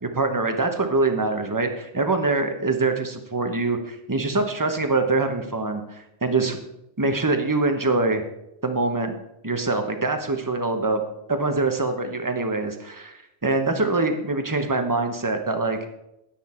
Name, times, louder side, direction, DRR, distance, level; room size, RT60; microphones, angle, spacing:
voice 1, 0.1-6.6 7.0-8.2 8.6-9.1 9.4-11.0 11.3-15.8, right 3 dB, 15° right, 6 dB, 0.9 m, -24 dB
9.9 x 9.6 x 4.4 m, 0.84 s
omnidirectional pair, 1.3 m